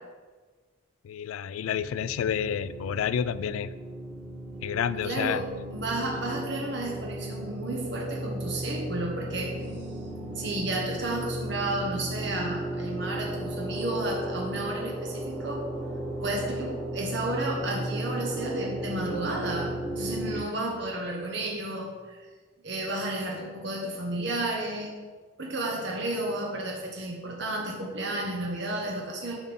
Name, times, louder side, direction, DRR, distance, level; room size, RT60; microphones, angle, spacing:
voice 1, 1.0-3.7 4.6-5.4, left 8 dB, 85° left, 16 dB, 0.3 m, -29 dB
sound 1, 1.6-20.3, right 1 dB, 30° right, 1.2 m, -35 dB
voice 2, 5.0-5.4 5.7-9.5 10.3-15.7 16.2-22.2 22.6-24.9 25.4-29.4, right 1 dB, 55° right, -1 dB, 1.1 m, -32 dB
7.1 x 5.2 x 4.3 m, 1.4 s
head